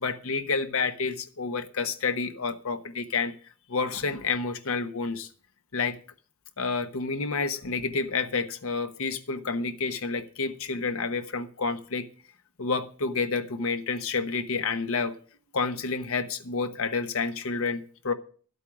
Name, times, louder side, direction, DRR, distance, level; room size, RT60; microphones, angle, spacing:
voice 1, 0.0-3.3 3.7-5.3 5.7-6.0 6.6-12.1 12.6-15.1 15.5-18.1, left 4 dB, 65° left, 8 dB, 1.1 m, -29 dB
11.0 x 8.3 x 6.0 m, 0.43 s
head